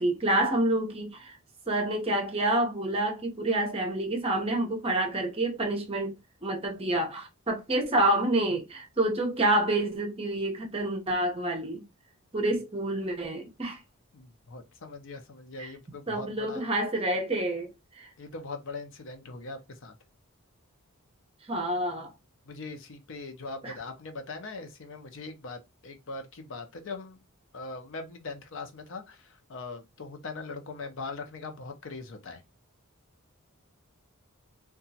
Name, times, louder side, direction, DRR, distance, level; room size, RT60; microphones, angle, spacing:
voice 1, 0.0-1.4 1.7-11.8 12.3-13.8 15.6-15.7 16.1-17.7 18.0-18.1 21.5-22.1 23.6-23.7, right 1 dB, 25° right, 0.7 m, -28 dB
voice 2, 14.1-16.7 18.2-20.0 22.5-27.2 27.5-32.4, left 3 dB, 60° left, 0.6 m, -41 dB
2.9 x 2.3 x 2.7 m
head